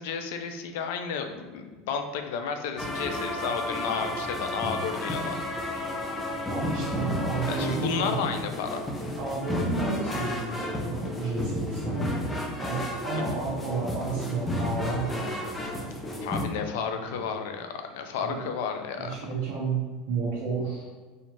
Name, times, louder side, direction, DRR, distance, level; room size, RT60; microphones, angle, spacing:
voice 1, 0.0-5.4 7.5-8.9 13.1-13.4 16.2-19.1, left 6 dB, 70° left, 6 dB, 0.4 m, -32 dB
sound 1, 2.8-16.4, left 1 dB, 10° left, 0.4 m, -32 dB
voice 2, 6.5-8.2 9.2-12.2 12.6-16.2 16.8-17.2 18.2-18.4 19.0-19.8 20.1-20.9, right 3 dB, 45° right, -9 dB, 0.8 m, -31 dB
4.3 x 2.4 x 2.9 m, 1.3 s
supercardioid pair, 170°, 0 cm